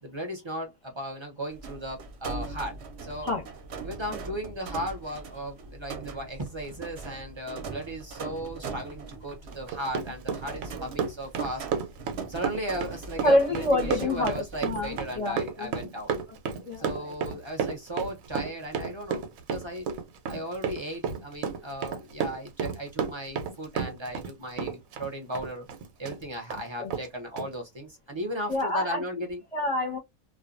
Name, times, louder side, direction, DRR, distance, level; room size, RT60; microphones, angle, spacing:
voice 1, 0.0-2.7 3.0-3.3 3.8-11.7 12.3-16.1 16.8-19.9 20.3-25.7 26.0-29.4, equal, 35° right, 0.4 m, -36 dB
sound 1, 1.5-15.2, right 4 dB, 60° right, 0.8 m, -41 dB
Run, 9.5-24.3 24.6-26.2 26.5-26.6 26.9-27.1 27.4-27.5, right 6 dB, 85° right, 1.0 m, -32 dB
voice 2, 13.2-15.7 16.3-17.1 26.8-26.9 28.5-29.2 29.5-30.0, left 1 dB, 30° left, 0.7 m, -27 dB
2.4 x 2.2 x 2.4 m
omnidirectional pair, 1.4 m